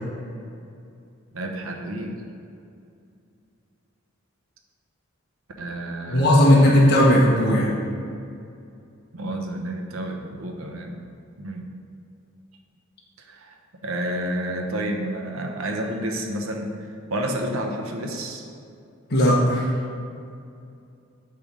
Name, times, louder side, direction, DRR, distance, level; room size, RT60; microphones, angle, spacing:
voice 1, 1.3-2.2 5.6-6.8 9.1-11.0 11.4-11.7 13.2-13.6 13.8-18.5, right 1 dB, 85° right, 2 dB, 0.9 m, -30 dB
voice 2, 6.1-7.7 19.1-19.7, left 1 dB, 50° left, -5 dB, 1.3 m, -16 dB
8.6 x 3.5 x 6.3 m, 2.5 s
head